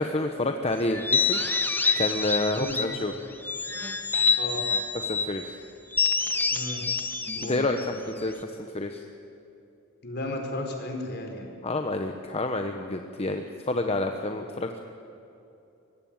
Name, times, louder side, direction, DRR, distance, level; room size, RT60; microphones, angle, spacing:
voice 1, 0.0-1.4 1.9-3.1 5.0-5.6 7.5-9.0 11.6-14.8, left 2 dB, 30° left, 5 dB, 1.1 m, -29 dB
sound 1, 0.9-3.0 3.4-5.3 5.9-8.4, left 4 dB, 10° left, 1.4 m, -27 dB
voice 2, 4.4-4.7 6.5-6.9 7.3-7.9 10.0-11.5 14.4-14.5, left 1 dB, 50° left, 3 dB, 4.4 m, -35 dB
24.0 x 20.5 x 8.9 m, 2.8 s
head